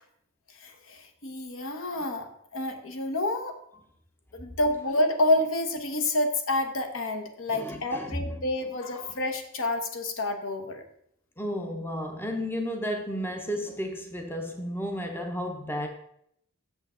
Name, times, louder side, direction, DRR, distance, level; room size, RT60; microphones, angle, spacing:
voice 1, 0.6-3.6 4.3-10.8, left 1 dB, 65° left, 1.0 m, -28 dB
voice 2, 7.5-8.5 11.4-15.9, equal, 10° left, 0.6 m, -33 dB
7.9 x 6.8 x 3.7 m
head